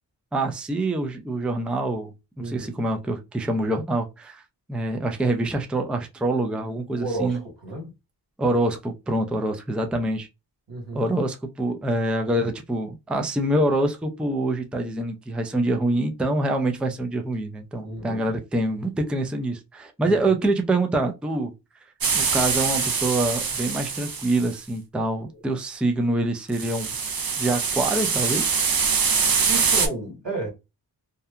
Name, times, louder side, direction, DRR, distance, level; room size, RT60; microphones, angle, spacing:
voice 1, 0.3-4.4 4.7-7.4 8.4-10.3 10.9-21.5 22.1-26.9 27.4-28.4, right 2 dB, 5° right, 0.3 m, -25 dB
voice 2, 2.4-2.9 7.0-7.9 10.7-11.1 17.8-18.2 20.0-20.1 25.3-25.4 29.5-30.5, right 2 dB, 90° right, 1.6 m, -32 dB
sound 1, 22.0-24.5 26.5-29.9, right 5 dB, 55° right, 0.7 m, -24 dB
2.7 x 2.2 x 2.3 m
wide cardioid pair, 75°, 42 cm